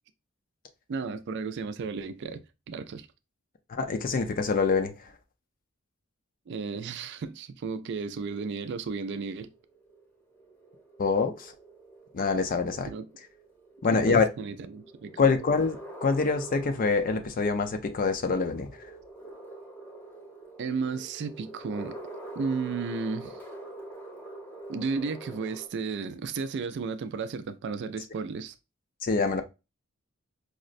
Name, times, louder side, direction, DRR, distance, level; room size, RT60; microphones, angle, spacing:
voice 1, 0.9-3.1 6.5-9.5 12.8-13.1 13.9-15.2 20.6-22.0 22.4-23.4 24.7-28.5, right 4 dB, 55° right, 0.3 m, -33 dB
voice 2, 3.7-4.9 11.0-11.5 12.1-12.9 13.8-14.3 15.2-18.7 29.0-29.4, left 4 dB, 40° left, 0.5 m, -25 dB
sound 1, 8.3-25.7, right 2 dB, 10° left, 0.8 m, -45 dB
4.9 x 2.0 x 2.5 m
head